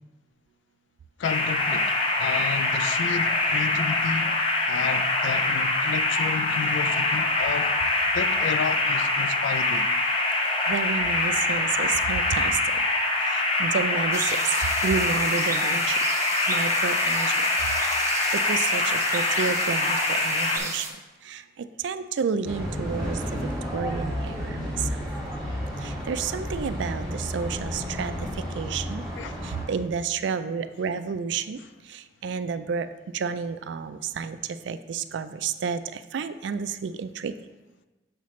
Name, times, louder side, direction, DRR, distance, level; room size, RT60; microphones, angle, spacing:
voice 1, 1.2-4.4 4.7-7.7 8.1-9.9 29.2-29.4 31.6-31.7, left 6 dB, 75° left, 0.3 m, -32 dB
sound 1, 1.2-20.6, left 2 dB, 30° left, 0.6 m, -24 dB
voice 2, 10.7-12.6 13.6-14.2 14.8-16.0 16.5-17.3 18.5-18.8 19.1-20.8 21.8-23.2 23.7-24.1 24.4-24.7 26.1-28.1 28.6-29.0 29.7-31.6 32.2-32.9 33.1-34.4 34.7-35.8 36.1-37.3, right 5 dB, 70° right, 0.3 m, -30 dB
sound 2, 14.1-20.9, right 3 dB, 15° right, 0.6 m, -35 dB
sound 3, 22.4-29.6, equal, ahead, 1.9 m, -32 dB
6.5 x 5.7 x 3.1 m
head